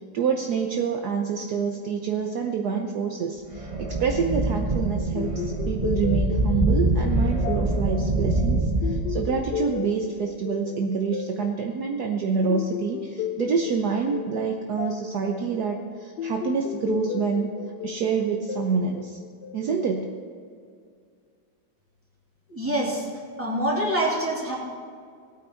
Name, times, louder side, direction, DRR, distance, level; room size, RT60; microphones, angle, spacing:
voice 1, 0.1-8.6 8.9-17.5 17.8-19.2 19.5-20.1, right 5 dB, 65° right, 2 dB, 1.3 m, -27 dB
sound 1, 3.5-9.7, right 2 dB, 25° right, 0.9 m, -25 dB
sound 2, 5.2-19.9, left 10 dB, 70° left, 1.1 m, -35 dB
voice 2, 22.5-23.1 23.4-24.6, right 1 dB, 5° right, -5 dB, 2.8 m, -25 dB
18.0 x 9.0 x 4.4 m, 2.2 s
omnidirectional pair, 2.0 m